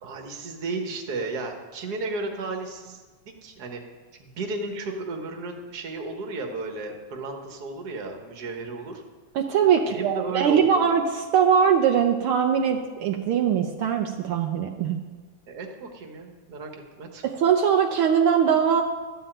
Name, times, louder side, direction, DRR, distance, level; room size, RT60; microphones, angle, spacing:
voice 1, 0.0-3.8 4.2-9.0 9.9-10.9 15.5-17.2, right 3 dB, 45° right, 3 dB, 1.4 m, -34 dB
voice 2, 9.3-15.0 17.2-18.8, right 7 dB, 80° right, 3 dB, 1.2 m, -21 dB
13.5 x 5.6 x 8.9 m, 1.3 s
omnidirectional pair, 3.3 m